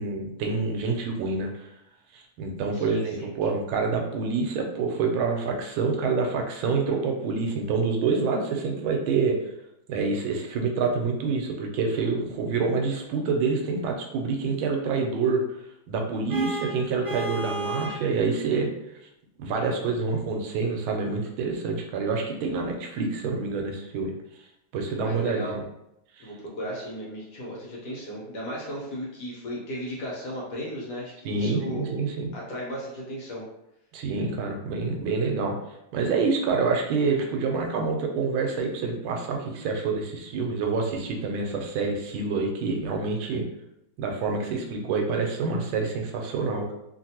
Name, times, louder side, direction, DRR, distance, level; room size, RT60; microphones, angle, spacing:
voice 1, 0.0-1.7 2.1-9.4 9.9-15.4 15.9-18.7 19.4-24.1 24.7-25.6 26.2-26.3 31.2-32.3 33.9-35.6 35.9-43.4 44.0-46.7, right 4 dB, 85° right, 2 dB, 1.4 m, -27 dB
voice 2, 2.7-3.3 25.0-25.6 26.2-31.9 32.3-33.4, equal, 60° left, -4 dB, 1.3 m, -35 dB
Vehicle horn car horn honking, 16.3-18.1, right 2 dB, 25° right, 1.4 m, -33 dB
3.2 x 2.5 x 2.8 m, 0.83 s
omnidirectional pair, 2.2 m